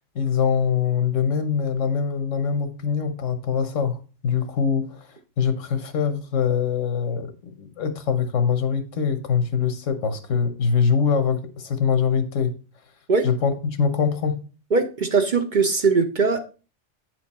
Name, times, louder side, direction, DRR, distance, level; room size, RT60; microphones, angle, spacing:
voice 1, 0.1-12.5 13.2-14.4, left 6 dB, 80° left, 1.3 m, -23 dB
voice 2, 14.7-16.4, right 4 dB, 45° right, 0.7 m, -20 dB
9.1 x 4.5 x 4.1 m
omnidirectional pair, 1.3 m